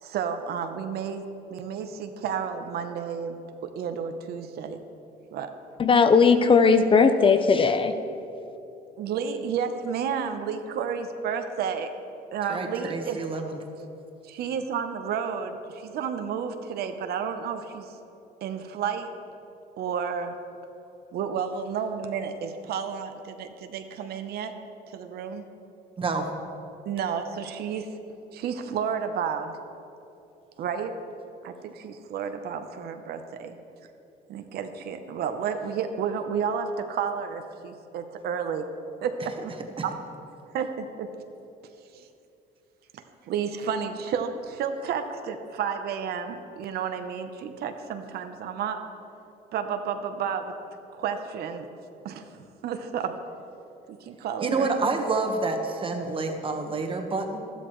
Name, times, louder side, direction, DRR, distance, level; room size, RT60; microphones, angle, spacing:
voice 1, 0.0-3.4 3.6-4.8 5.3-5.5 9.0-11.9 12.3-13.2 14.2-17.9 18.4-19.1 19.8-20.3 21.1-24.5 24.9-25.5 26.8-27.9 28.3-29.6 30.6-30.9 31.4-33.6 34.3-38.6 39.0-39.6 39.8-39.9 40.5-41.1 41.9-42.1 42.9-48.8 49.5-50.5 50.9-51.7 52.0-52.2 52.6-53.2 53.9-54.7, right 7 dB, 70° right, 7 dB, 0.8 m, -31 dB
voice 2, 5.8-7.9, left 5 dB, 30° left, 9 dB, 0.6 m, -18 dB
voice 3, 12.5-13.6 26.0-26.3 54.4-57.5, right 3 dB, 30° right, 4 dB, 1.3 m, -28 dB
13.5 x 12.0 x 3.1 m, 2.8 s
cardioid pair, 110°, 17 cm